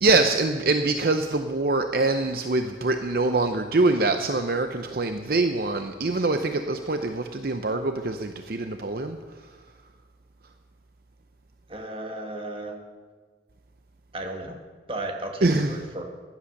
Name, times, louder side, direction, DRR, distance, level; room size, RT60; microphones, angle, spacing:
voice 1, 0.0-9.2 15.4-15.8, right 3 dB, 55° right, 7 dB, 0.7 m, -24 dB
voice 2, 11.7-12.8 14.1-14.6 14.9-16.0, right 2 dB, 30° right, 3 dB, 1.6 m, -34 dB
15.0 x 11.0 x 6.5 m, 1.5 s
head